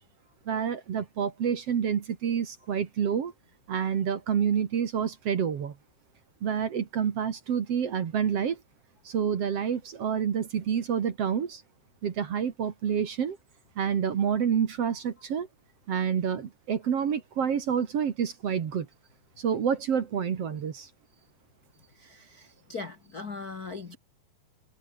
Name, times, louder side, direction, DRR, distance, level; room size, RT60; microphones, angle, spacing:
voice 1, 0.5-3.3 3.7-5.7 6.4-8.6 9.1-11.6 12.0-13.4 13.8-15.5 15.9-18.9 19.4-20.9, right 7 dB, 50° right, 2.2 m, -28 dB
voice 2, 22.0-24.0, left 4 dB, 80° left, 0.8 m, -40 dB
omnidirectional pair, 4.5 m